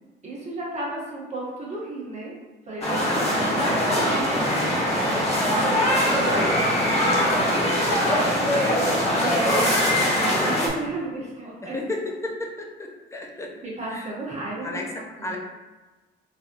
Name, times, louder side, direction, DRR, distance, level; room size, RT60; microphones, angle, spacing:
voice 1, 0.2-2.3 2.7-6.5 7.0-11.8 13.6-15.4, right 1 dB, 35° right, -5 dB, 1.2 m, -34 dB
sound 1, 2.8-10.7, equal, 30° left, 1.1 m, -22 dB
voice 2, 11.6-13.5 13.9-14.1 14.6-14.8 15.2-15.4, left 2 dB, 15° left, 0 dB, 0.6 m, -33 dB
3.3 x 2.6 x 2.6 m, 1.2 s
cardioid pair, 90°, 20 cm